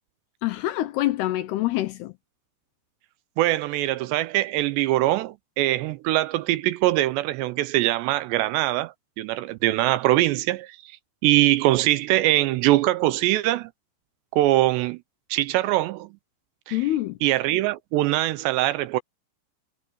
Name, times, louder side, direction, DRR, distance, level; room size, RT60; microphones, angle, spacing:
voice 1, 0.4-2.1 16.7-17.2, left 15 dB, 75° left, 2.5 m, -25 dB
voice 2, 3.4-10.8 11.2-13.7 14.3-15.0 15.3-16.1 16.7-16.8 17.2-19.0, right 16 dB, 80° right, 2.7 m, -22 dB
omnidirectional pair, 5.3 m